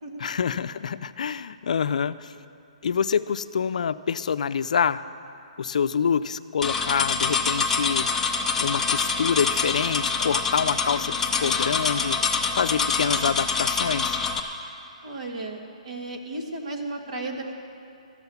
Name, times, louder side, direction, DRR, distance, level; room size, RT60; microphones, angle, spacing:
voice 1, 0.2-2.3 2.8-5.0 5.6-8.3 8.6-12.2 12.6-14.2, left 7 dB, 70° left, 13 dB, 0.5 m, -26 dB
sound 1, 6.6-14.4, left 5 dB, 10° left, 0.6 m, -25 dB
voice 2, 15.0-17.5, right 2 dB, 60° right, 2 dB, 1.6 m, -34 dB
13.5 x 7.0 x 9.4 m, 2.7 s
hypercardioid pair, 160°, 4 cm